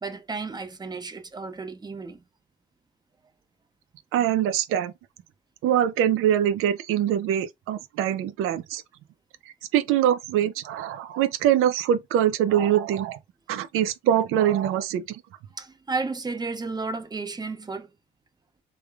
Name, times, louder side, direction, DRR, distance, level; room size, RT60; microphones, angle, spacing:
voice 1, 0.0-2.2 15.5-17.9, right 4 dB, 20° right, 0.7 m, -33 dB
voice 2, 4.1-4.9 5.6-8.8 9.7-13.2 13.5-15.2, right 10 dB, 85° right, 0.6 m, -23 dB
3.4 x 3.3 x 2.3 m
cardioid pair, 105°, 21 cm